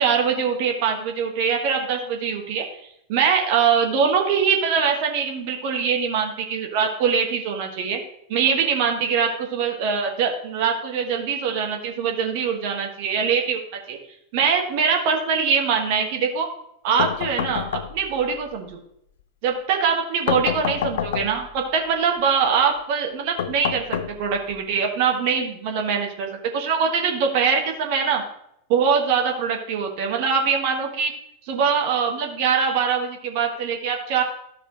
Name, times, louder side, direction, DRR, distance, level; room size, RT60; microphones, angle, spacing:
voice 1, 0.0-2.7 3.1-8.0 8.3-14.0 14.3-16.5 16.8-18.8 19.4-28.2 28.7-31.1 31.5-34.2, right 6 dB, 45° right, 2 dB, 1.3 m, -23 dB
sound 1, 17.0-18.3 20.3-21.6 23.4-24.6, left 9 dB, 60° left, 0.4 m, -28 dB
13.0 x 5.9 x 3.0 m, 0.76 s
figure-of-eight pair, 90°, 0 cm